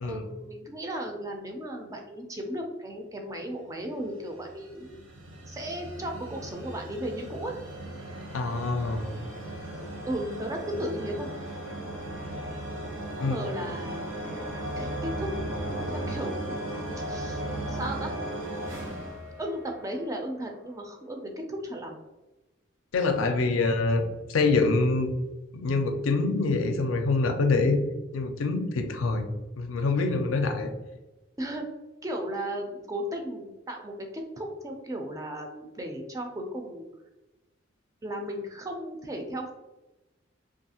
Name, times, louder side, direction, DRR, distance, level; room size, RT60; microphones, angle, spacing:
voice 1, 0.0-5.0 5.5-7.6 10.1-11.3 13.2-14.1 14.7-16.7 17.1-17.4 17.7-18.2 19.4-21.9 31.4-31.8 32.0-36.9 38.0-39.5, right 1 dB, 15° right, 2 dB, 0.3 m, -35 dB
sound 1, 4.0-20.1, right 1 dB, 75° right, 0.8 m, -36 dB
voice 2, 8.3-9.1 13.2-13.3 22.9-25.1 25.5-27.9 28.1-29.3 29.6-30.7, left 3 dB, 85° left, 6 dB, 0.4 m, -25 dB
2.7 x 2.4 x 2.7 m, 1.0 s
head